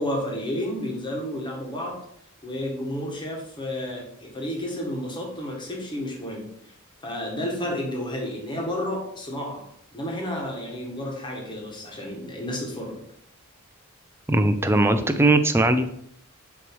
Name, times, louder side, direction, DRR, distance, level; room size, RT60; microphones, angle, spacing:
voice 1, 0.0-2.0 2.4-6.5 7.0-9.6 9.9-13.0, left 1 dB, 20° left, -1 dB, 1.4 m, -31 dB
voice 2, 14.3-15.9, right 2 dB, 10° right, 8 dB, 0.4 m, -19 dB
7.0 x 3.1 x 4.6 m, 0.69 s
head